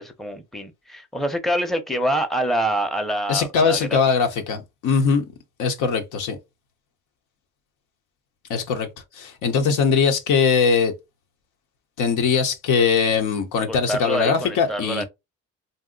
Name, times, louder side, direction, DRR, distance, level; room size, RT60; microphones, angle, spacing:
voice 1, 0.0-4.0 13.7-15.0, right 1 dB, ahead, 0.6 m, -26 dB
voice 2, 3.3-5.2 5.6-6.4 8.5-8.9 9.1-10.9 12.0-15.0, left 5 dB, 85° left, 0.8 m, -21 dB
2.6 x 2.1 x 3.7 m
cardioid pair, 90°, 30 cm